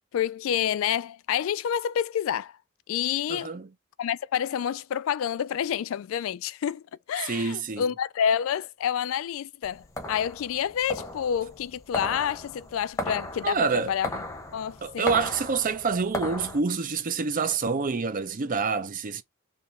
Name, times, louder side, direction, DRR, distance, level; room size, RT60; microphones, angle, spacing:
voice 1, 0.1-2.5 2.9-3.5 4.0-6.8 7.1-14.2 14.5-15.1, left 9 dB, 70° left, 0.3 m, -28 dB
voice 2, 3.3-3.7 7.2-7.9 13.4-13.9 14.8-19.2, right 5 dB, 40° right, 0.5 m, -27 dB
sound 1, 9.6-16.6, left 1 dB, 15° left, 0.8 m, -36 dB
3.6 x 2.9 x 4.2 m
head